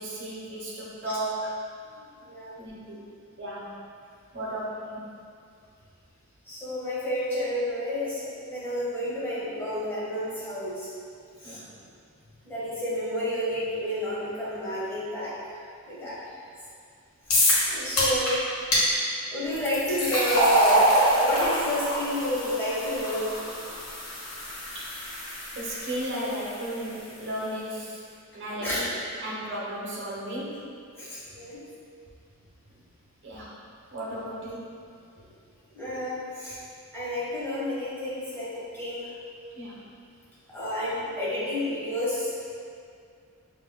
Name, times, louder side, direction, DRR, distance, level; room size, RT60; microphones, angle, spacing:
voice 1, 0.0-1.6 2.6-3.0 3.4-3.7 4.3-5.2 11.4-11.9 16.0-16.1 24.7-24.8 25.5-28.0 28.3-28.9 29.2-30.7 31.3-31.4 33.2-33.6 33.9-34.8 39.6-39.8, right 1 dB, 55° right, -6 dB, 1.0 m, -35 dB
voice 2, 1.9-2.6 6.4-10.9 11.4-11.6 12.4-15.5 15.9-16.2 17.3-18.4 19.3-23.3 28.6-28.8 31.0-31.6 35.7-36.6 36.9-39.1 40.5-42.3, left 1 dB, 10° left, -11 dB, 1.3 m, -30 dB
sound 1, 17.3-17.7 18.0-18.3 18.7-18.8 19.5-26.7, equal, 75° left, 1.3 m, -25 dB
5.6 x 3.2 x 2.2 m, 2.3 s
head